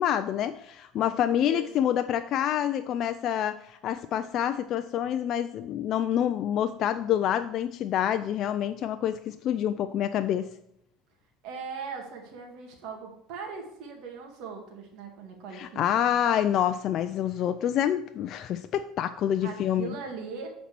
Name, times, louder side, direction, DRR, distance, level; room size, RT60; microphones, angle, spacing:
voice 1, 0.0-10.5 15.5-19.9, left 10 dB, 50° left, 9 dB, 0.3 m, -27 dB
voice 2, 11.4-16.2 19.4-20.5, right 5 dB, 70° right, 2 dB, 1.8 m, -39 dB
9.1 x 4.2 x 6.0 m, 0.76 s
cardioid pair, 130°, 0 cm